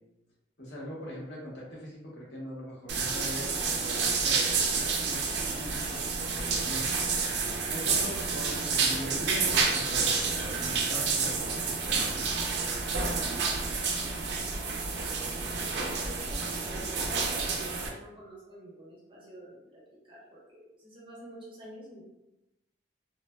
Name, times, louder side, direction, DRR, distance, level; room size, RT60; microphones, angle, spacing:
voice 1, 0.6-7.3 7.7-12.3, equal, 70° left, -5 dB, 0.9 m, -41 dB
sound 1, 2.9-17.9, right 4 dB, 70° right, 0.4 m, -29 dB
voice 2, 16.0-22.0, right 1 dB, 30° right, -7 dB, 0.9 m, -47 dB
3.3 x 2.1 x 2.2 m, 0.96 s
head